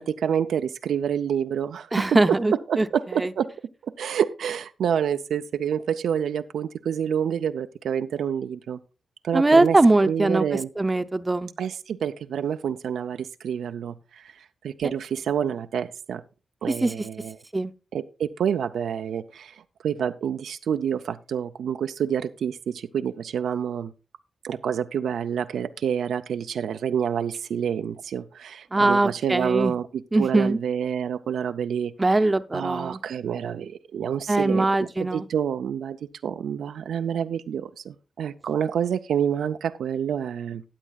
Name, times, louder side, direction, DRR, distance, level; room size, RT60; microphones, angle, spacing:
voice 1, 0.0-2.0 2.7-3.5 3.8-8.8 9.2-9.8 10.1-10.7 11.6-14.3 14.6-16.2 16.6-17.4 17.9-23.9 24.4-32.2 32.5-36.0 36.2-40.6, right 8 dB, 90° right, 0.4 m, -28 dB
voice 2, 1.9-2.9 3.2-3.3 9.3-10.5 10.8-11.5 16.8-16.9 17.5-17.7 28.7-29.7 30.1-30.6 32.0-33.0 34.3-35.3, right 2 dB, 25° right, 0.6 m, -21 dB
14.5 x 9.0 x 2.3 m
cardioid pair, 75°, 0 cm